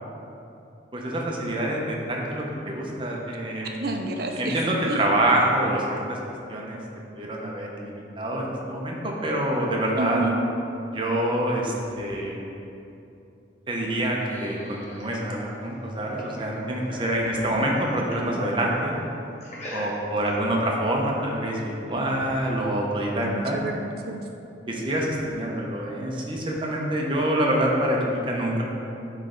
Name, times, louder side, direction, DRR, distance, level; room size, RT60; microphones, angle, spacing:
voice 1, 0.9-3.7 4.4-6.2 6.5-6.8 7.1-10.2 10.9-12.4 13.7-19.0 19.7-23.6 24.7-28.6, right 1 dB, 30° right, -2 dB, 0.8 m, -26 dB
voice 2, 3.6-5.0 10.0-10.4 17.5-17.6 23.2-24.2, right 2 dB, 60° right, 3 dB, 0.6 m, -30 dB
sound 1, 13.8-17.2 17.5-18.5 19.4-20.3, equal, 40° left, 1.1 m, -40 dB
9.0 x 3.3 x 3.8 m, 2.8 s
head